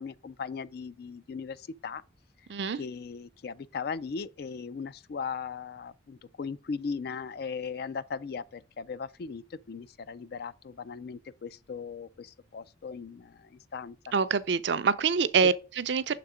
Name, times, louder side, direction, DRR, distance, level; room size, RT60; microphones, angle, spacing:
voice 1, 0.0-2.0 2.7-14.0, left 5 dB, 55° left, 0.4 m, -38 dB
voice 2, 14.1-16.2, right 5 dB, 60° right, 0.5 m, -26 dB
6.7 x 3.5 x 4.9 m
head